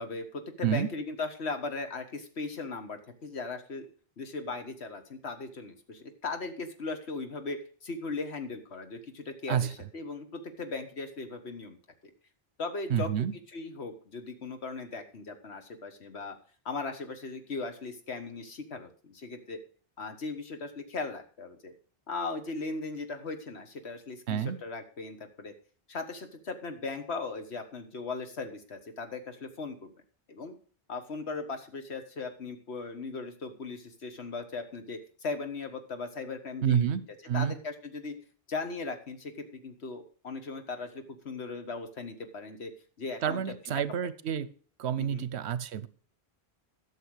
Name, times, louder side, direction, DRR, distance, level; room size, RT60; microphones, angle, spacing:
voice 1, 0.0-3.9 4.2-11.8 12.6-13.1 13.5-16.4 16.7-19.6 20.0-21.7 22.1-25.5 25.9-29.9 30.3-30.5 30.9-37.0 37.3-38.2 38.5-42.7 43.0-43.4 45.0-45.3, left 3 dB, 80° left, 7 dB, 1.7 m, -38 dB
voice 2, 12.9-13.3 24.3-24.6 36.6-37.6 43.2-44.5 44.8-45.9, right 9 dB, 80° right, 17 dB, 1.0 m, -29 dB
12.5 x 6.5 x 6.4 m, 0.43 s
omnidirectional pair, 1.1 m